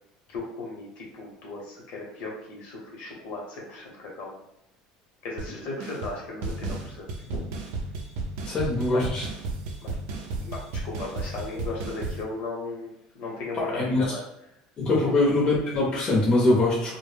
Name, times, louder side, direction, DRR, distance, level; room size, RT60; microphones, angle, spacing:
voice 1, 0.3-4.4 5.2-7.5 8.9-9.0 9.8-9.9 10.3-14.2 15.0-15.1, left 3 dB, 60° left, -2 dB, 0.9 m, -36 dB
sound 1, 5.4-5.5 5.8-6.2 6.4-12.2, right 3 dB, 75° right, 0.5 m, -33 dB
voice 2, 8.4-9.2 13.7-14.0 14.8-17.0, left 2 dB, 35° left, -4 dB, 0.7 m, -23 dB
2.1 x 2.1 x 3.3 m, 0.81 s
supercardioid pair, 115°, 3 cm